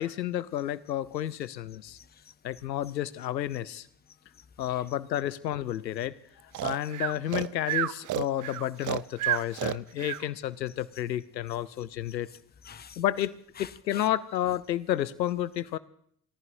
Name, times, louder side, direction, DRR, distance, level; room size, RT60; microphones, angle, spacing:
voice 1, 0.0-2.0 2.4-3.9 4.6-6.1 6.4-12.3 13.0-15.8, left 12 dB, 90° left, 19 dB, 0.6 m, -31 dB
voice 2, 2.0-2.3 3.5-3.6 4.6-5.0 6.8-6.9 9.3-9.5 10.1-10.2 10.9-11.0 12.1-14.1, left 7 dB, 20° left, 16 dB, 0.7 m, -50 dB
Breathing, 6.5-10.2, right 14 dB, 40° right, 0.5 m, -30 dB
28.0 x 14.5 x 2.7 m, 0.64 s
figure-of-eight pair, 45°, 49 cm